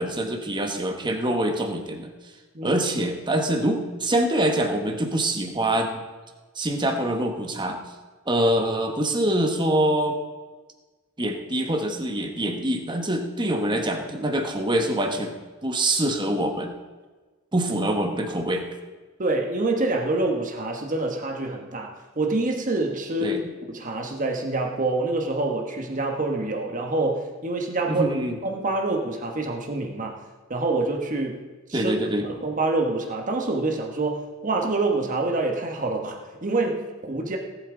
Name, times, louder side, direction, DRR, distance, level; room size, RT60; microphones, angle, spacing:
voice 1, 0.0-2.1 2.6-6.0 6.6-7.8 8.3-10.2 11.2-15.4 15.6-16.7 17.5-18.7 23.2-23.4 28.0-28.4 31.7-32.3, right 1 dB, 20° right, 4 dB, 1.3 m, -25 dB
voice 2, 19.2-23.4 23.7-28.1 28.4-30.2 30.5-31.4 31.7-37.4, right 2 dB, 40° right, 2 dB, 1.3 m, -26 dB
18.0 x 8.5 x 3.9 m, 1.3 s
head